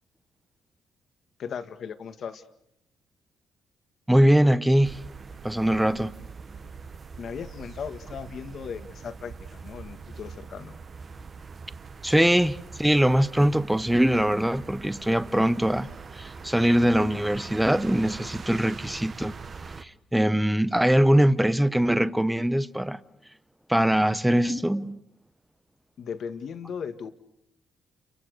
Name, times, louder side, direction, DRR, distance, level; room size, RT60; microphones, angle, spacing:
voice 1, 1.4-2.4 7.2-10.7 26.0-27.1, left 7 dB, 60° left, 1.8 m, -37 dB
voice 2, 4.1-5.0 5.4-6.1 12.0-15.9 16.2-19.3 19.8-23.0 23.7-25.0, right 1 dB, 5° right, 1.0 m, -22 dB
sound 1, 4.8-19.8, right 5 dB, 40° right, 1.4 m, -42 dB
29.5 x 24.5 x 6.6 m
cardioid pair, 90°, 0 cm